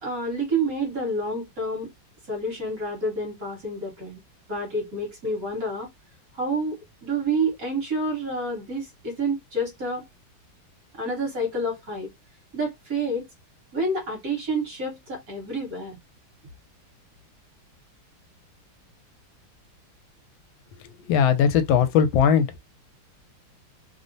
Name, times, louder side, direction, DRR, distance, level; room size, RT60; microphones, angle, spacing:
voice 1, 0.0-1.9 2.3-4.2 4.5-5.9 6.3-10.0 10.9-12.1 12.5-13.3 13.7-16.0, right 2 dB, 50° right, 1.5 m, -28 dB
voice 2, 20.7-22.5, left 7 dB, 85° left, 1.3 m, -20 dB
3.3 x 2.1 x 2.6 m
omnidirectional pair, 2.1 m